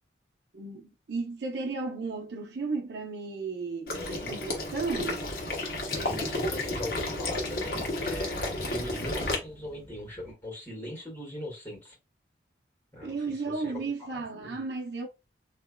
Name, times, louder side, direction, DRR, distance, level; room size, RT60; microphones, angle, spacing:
voice 1, 0.5-5.3 13.0-15.1, right 4 dB, 65° right, 0.7 m, -34 dB
Water / Liquid, 3.9-9.3, left 2 dB, 55° left, 1.1 m, -32 dB
voice 2, 3.9-4.4 5.9-11.9 12.9-14.6, left 1 dB, 10° left, 2.0 m, -40 dB
sound 1, 4.8-10.3, equal, 35° right, 1.7 m, -50 dB
3.4 x 3.0 x 2.2 m
head